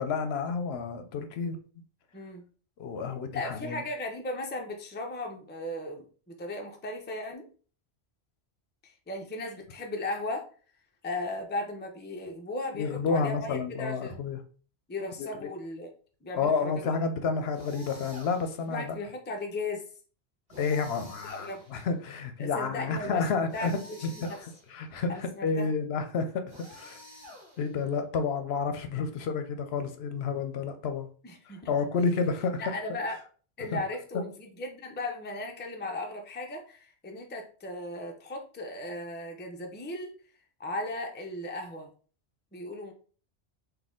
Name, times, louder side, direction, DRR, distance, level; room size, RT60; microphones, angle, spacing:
voice 1, 0.0-1.6 2.8-3.8 12.7-14.4 15.3-15.5 16.3-19.0 20.6-23.7 24.2-26.4 26.7-27.0 27.6-31.1 31.7-32.6 33.7-33.8, left 5 dB, 70° left, 8 dB, 0.8 m, -30 dB
voice 2, 2.1-2.5 3.3-7.5 8.8-10.5 11.0-14.2 14.9-15.9 16.2-16.7 18.7-19.9 21.2-21.7 22.4-24.4 25.1-25.7 31.2-31.7 32.6-33.2 33.6-40.1 40.6-41.9 42.5-42.9, left 2 dB, 15° left, 2 dB, 0.4 m, -36 dB
sound 1, 17.5-18.7 20.5-21.9 23.5-24.8 26.5-27.9, left 1 dB, 45° right, 1.8 m, -49 dB
4.1 x 2.7 x 3.7 m, 0.40 s
omnidirectional pair, 1.1 m